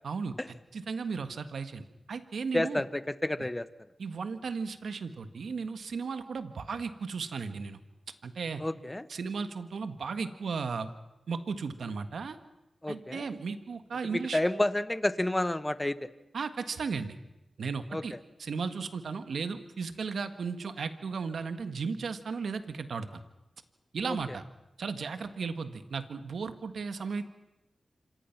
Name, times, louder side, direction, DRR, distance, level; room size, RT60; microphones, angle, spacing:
voice 1, 0.0-0.3 0.7-2.8 4.0-7.8 8.2-8.6 9.1-10.9 11.3-12.4 12.9-14.4 16.3-17.2 17.6-18.1 18.4-23.2 23.9-24.4 24.8-27.2, right 5 dB, 80° right, 9 dB, 1.6 m, -35 dB
voice 2, 2.5-3.7 8.6-9.1 12.8-13.2 14.1-16.1 17.9-18.0 24.1-24.2, left 1 dB, 20° left, 13 dB, 1.3 m, -30 dB
27.0 x 25.5 x 6.0 m, 0.96 s
cardioid pair, 45°, 0 cm